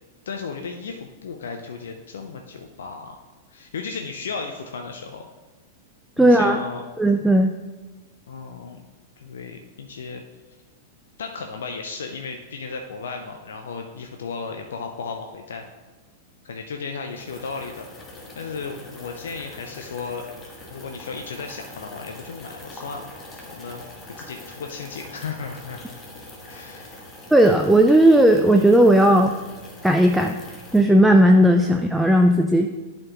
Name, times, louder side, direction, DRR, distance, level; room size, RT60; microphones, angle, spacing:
voice 1, 0.3-3.2 3.5-5.3 6.2-6.9 8.3-8.9 9.2-10.2 11.2-15.6 16.4-17.9 18.4-20.3 20.7-23.0 23.3-23.8 24.2-25.8 26.5-27.0, left 5 dB, 65° left, 4 dB, 0.5 m, -35 dB
voice 2, 6.2-6.6 7.0-7.6 27.3-29.3 29.8-30.4 30.7-32.7, right 1 dB, 5° right, 3 dB, 0.4 m, -15 dB
sound 1, 17.1-30.8, left 1 dB, 20° left, 1.3 m, -43 dB
11.0 x 4.3 x 3.0 m, 1.3 s
figure-of-eight pair, 95°, 0 cm